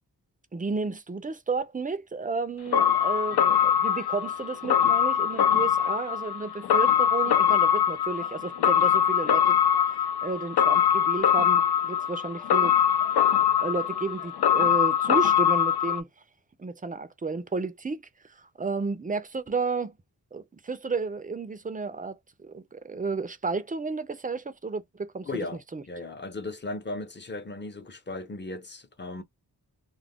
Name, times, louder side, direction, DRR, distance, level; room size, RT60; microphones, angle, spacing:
voice 1, 0.5-9.6 9.9-12.8 13.6-16.1 16.6-19.9 20.3-25.3 25.7-25.8, right 4 dB, 20° right, 0.5 m, -32 dB
sound 1, 2.7-16.0, left 9 dB, 80° left, 0.5 m, -23 dB
voice 2, 25.2-29.2, left 2 dB, 30° left, 0.6 m, -36 dB
2.3 x 2.2 x 3.5 m
wide cardioid pair, 120°, 38 cm